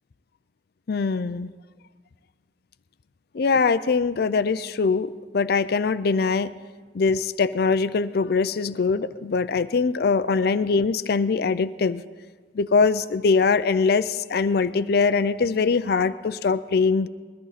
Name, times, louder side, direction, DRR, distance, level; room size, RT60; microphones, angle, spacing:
voice 1, 0.9-1.5 3.3-6.5 6.9-12.0 12.5-17.1, left 4 dB, 55° left, 14 dB, 0.4 m, -22 dB
21.0 x 13.5 x 4.1 m, 1.5 s
head